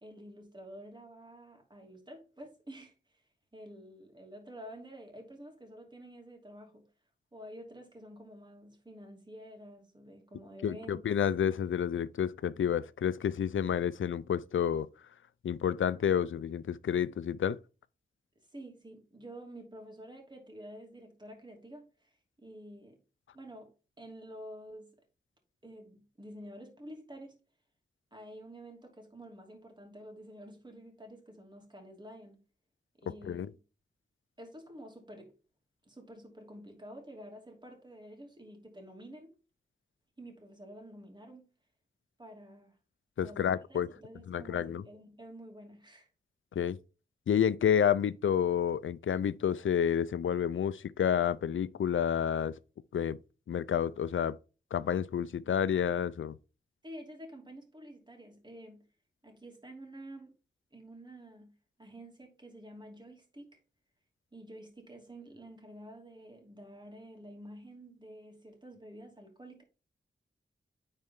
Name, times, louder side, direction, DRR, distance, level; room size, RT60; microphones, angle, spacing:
voice 1, 0.0-2.9 3.5-6.9 7.3-11.4 18.5-23.0 23.3-25.0 25.6-27.4 28.1-32.4 33.0-33.6 34.4-35.3 35.8-39.3 40.2-41.5 42.2-42.7 43.2-46.1 56.8-58.8 59.2-60.3 60.7-61.5 61.8-63.6 64.3-69.6, right 1 dB, 20° right, 2.7 m, -49 dB
voice 2, 10.6-14.9 15.4-17.6 33.3-33.5 43.2-43.9 44.3-44.8 46.6-46.8 47.3-52.5 52.9-53.2 53.5-54.4 54.7-56.4, left 8 dB, 85° left, 0.5 m, -29 dB
9.8 x 4.4 x 3.7 m
wide cardioid pair, 85°, 20 cm